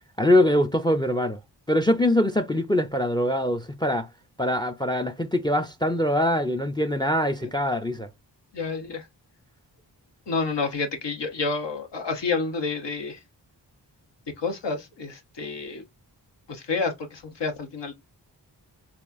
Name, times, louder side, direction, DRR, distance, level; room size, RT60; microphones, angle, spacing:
voice 1, 0.2-1.4 1.7-4.1 4.4-8.1, left 1 dB, 10° left, 0.4 m, -23 dB
voice 2, 8.5-9.1 10.3-13.2 14.4-15.8 16.5-17.9, left 4 dB, 75° left, 1.0 m, -29 dB
4.1 x 2.4 x 2.5 m
cardioid pair, 40°, 43 cm